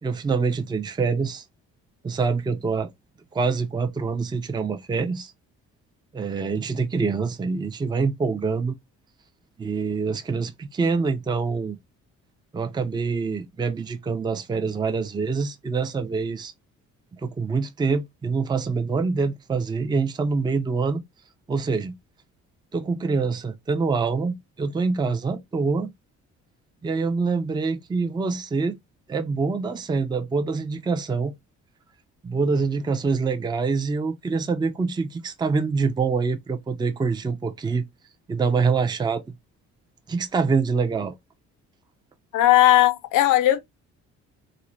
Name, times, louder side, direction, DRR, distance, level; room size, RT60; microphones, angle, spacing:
voice 1, 0.0-1.4 2.0-2.9 3.3-5.3 6.1-8.8 9.6-11.8 12.5-16.5 17.1-21.0 21.5-21.9 22.7-25.9 26.8-28.8 29.1-31.3 32.2-37.8 38.3-39.3 40.1-41.1, right 4 dB, 15° right, 0.4 m, -25 dB
voice 2, 42.3-43.6, left 14 dB, 90° left, 0.6 m, -17 dB
2.5 x 2.0 x 3.1 m
cardioid pair, 90°, 30 cm